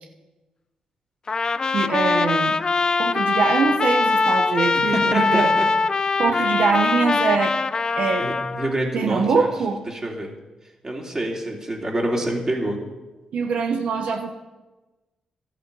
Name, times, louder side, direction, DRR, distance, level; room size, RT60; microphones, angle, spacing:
Trumpet, 1.3-8.7, left 4 dB, 35° left, 0.5 m, -22 dB
voice 1, 1.7-2.6 3.0-5.5 6.2-7.6 8.0-8.3 8.9-9.8 13.3-14.3, right 5 dB, 75° right, 4 dB, 0.9 m, -23 dB
voice 2, 4.9-5.7 6.3-6.5 8.2-9.5 9.9-10.3 10.8-12.8, right 1 dB, 30° right, -1 dB, 3.0 m, -27 dB
12.5 x 8.6 x 5.4 m, 1.1 s
cardioid pair, 80°, 2 cm